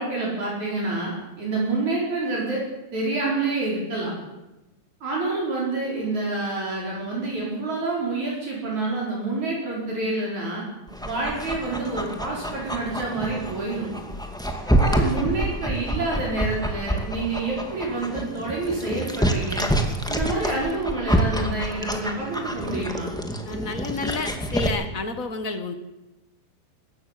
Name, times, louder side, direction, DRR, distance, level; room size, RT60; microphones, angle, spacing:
voice 1, 0.0-2.6 2.9-4.1 5.0-10.6 11.0-13.9 14.7-19.7 20.1-23.2, right 2 dB, 55° right, -4 dB, 6.6 m, -28 dB
Dog, 10.9-24.7, right 1 dB, ahead, 1.1 m, -27 dB
voice 2, 23.4-25.7, left 4 dB, 45° left, 8 dB, 1.0 m, -30 dB
21.0 x 15.0 x 9.4 m, 0.99 s
omnidirectional pair, 4.1 m